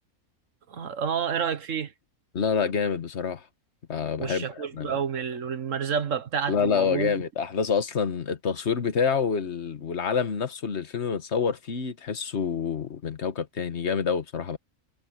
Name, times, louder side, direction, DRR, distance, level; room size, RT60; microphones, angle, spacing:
voice 1, 0.7-1.9 4.2-7.1, right 7 dB, 65° right, 1.6 m, -29 dB
voice 2, 2.3-3.4 3.9-4.9 6.5-14.6, left 6 dB, 55° left, 1.6 m, -27 dB
omnidirectional pair, 1.5 m